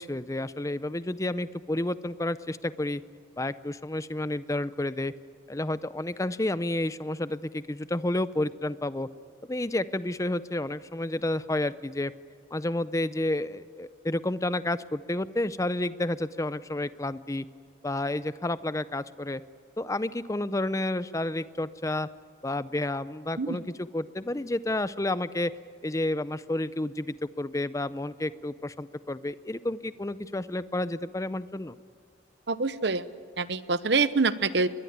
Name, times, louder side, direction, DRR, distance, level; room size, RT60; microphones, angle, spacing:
voice 1, 0.0-3.0 3.4-5.1 5.5-9.1 9.5-12.1 12.5-17.5 17.8-19.4 19.8-22.1 22.4-25.5 25.8-31.7, left 1 dB, 15° left, 15 dB, 0.6 m, -30 dB
voice 2, 32.5-33.0 33.4-34.7, right 4 dB, 70° right, 14 dB, 0.9 m, -25 dB
22.5 x 21.0 x 9.5 m, 2.2 s
head